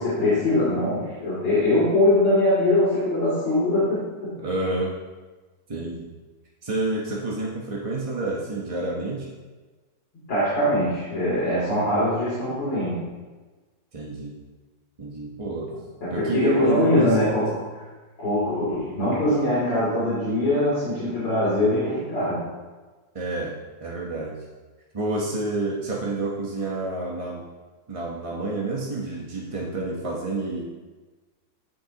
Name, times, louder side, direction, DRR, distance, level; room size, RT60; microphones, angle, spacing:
voice 1, 0.0-4.4 10.3-13.0 16.0-17.5 18.2-22.4, left 1 dB, 90° left, -11 dB, 3.5 m, -22 dB
voice 2, 4.4-4.9 5.7-6.1 6.6-9.3 13.9-14.4 15.0-15.7 16.1-17.4 23.1-23.5 23.8-24.4 24.9-27.4 27.9-30.6, right 2 dB, 30° right, -4 dB, 0.7 m, -29 dB
15.0 x 5.7 x 2.9 m, 1.3 s
omnidirectional pair, 2.0 m